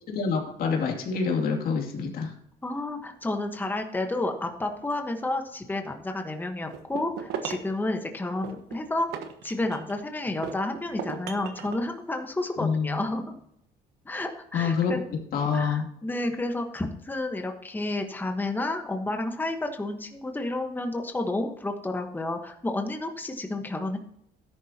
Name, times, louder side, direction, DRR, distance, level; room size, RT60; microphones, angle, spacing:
voice 1, 0.1-2.3 12.6-13.0 14.5-15.0 15.3-15.9, left 5 dB, 60° left, 1 dB, 2.7 m, -26 dB
voice 2, 2.6-9.1 9.4-13.2 14.0-15.0 15.5-24.0, left 2 dB, 10° left, 4 dB, 1.3 m, -31 dB
sound 1, 6.7-7.8 8.4-10.0 10.4-11.8, right 7 dB, 85° right, 1.3 m, -37 dB
13.0 x 10.5 x 2.9 m, 0.75 s
cardioid pair, 110°, 17 cm